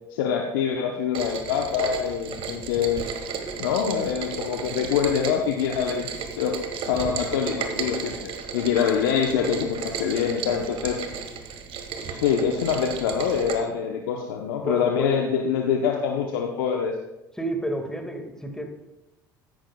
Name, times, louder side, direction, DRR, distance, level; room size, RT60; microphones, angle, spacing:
voice 1, 0.1-3.1 3.6-6.1 6.4-6.5 6.9-11.0 12.0-16.9, left 7 dB, 75° left, 2 dB, 0.9 m, -25 dB
Rain, 1.1-13.6, right 6 dB, 50° right, 1.4 m, -34 dB
voice 2, 14.6-15.1 17.3-18.7, right 1 dB, 5° left, 4 dB, 1.9 m, -30 dB
13.5 x 11.0 x 2.3 m, 0.98 s
hypercardioid pair, 70°, 11 cm